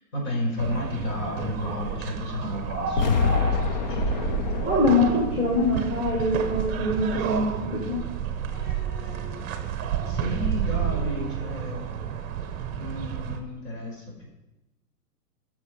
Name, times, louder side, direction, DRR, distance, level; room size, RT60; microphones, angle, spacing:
voice 1, 0.1-4.8 8.5-11.9 12.8-14.3, left 1 dB, 45° left, -2 dB, 5.5 m, -33 dB
sound 1, 0.6-13.4, right 8 dB, 20° right, 1.0 m, -30 dB
sound 2, 3.0-7.1, left 5 dB, 30° left, 0.4 m, -28 dB
voice 2, 4.6-8.0, left 2 dB, 15° left, -5 dB, 2.5 m, -24 dB
19.5 x 6.5 x 5.2 m, 0.97 s
hypercardioid pair, 140°, 47 cm